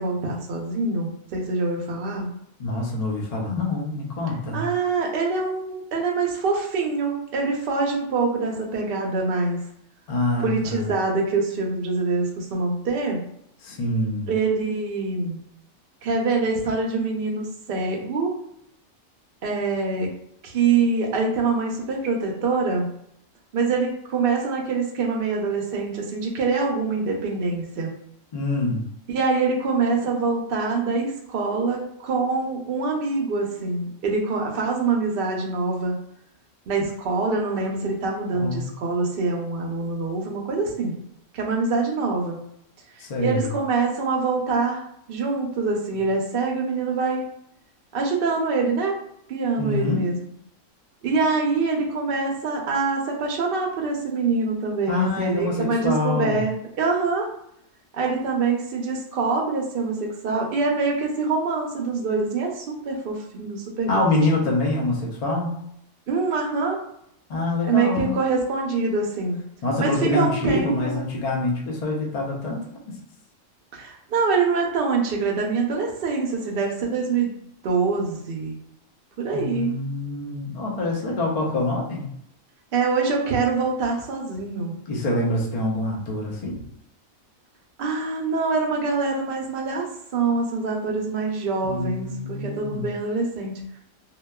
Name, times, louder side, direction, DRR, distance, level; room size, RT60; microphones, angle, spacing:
voice 1, 0.0-2.3 4.5-9.6 10.4-13.2 14.3-15.4 16.0-18.3 19.4-20.1 20.4-22.9 23.5-27.9 29.1-36.0 36.7-40.9 41.3-42.4 43.2-44.8 45.1-47.2 47.9-48.9 49.3-50.2 51.0-57.3 57.9-60.0 60.2-64.2 66.1-66.8 67.7-69.4 69.8-71.0 73.7-77.4 77.6-78.5 79.2-79.8 82.7-84.8 87.8-89.9 90.1-93.8, right 4 dB, 55° right, 0 dB, 0.7 m, -25 dB
voice 2, 2.6-4.6 10.1-10.9 13.6-14.3 28.3-28.9 38.3-38.7 43.0-43.5 49.6-50.1 54.9-56.4 63.9-65.6 67.3-68.2 69.6-72.6 72.9-73.0 79.3-82.1 84.9-86.6 91.6-92.9, left 2 dB, 50° left, -2 dB, 0.4 m, -25 dB
2.8 x 2.3 x 2.2 m, 0.73 s
omnidirectional pair, 1.4 m